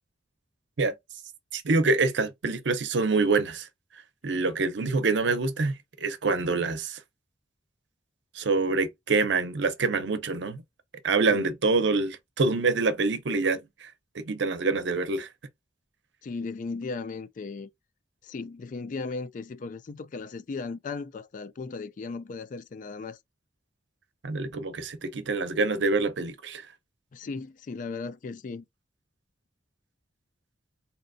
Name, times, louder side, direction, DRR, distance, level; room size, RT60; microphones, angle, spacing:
voice 1, 1.5-3.7 4.2-7.0 8.3-10.6 11.0-15.3 24.2-26.7, right 3 dB, 75° right, 0.6 m, -26 dB
voice 2, 16.2-17.7 18.2-23.2 27.1-28.6, left 4 dB, 45° left, 0.3 m, -36 dB
4.1 x 2.8 x 2.6 m
head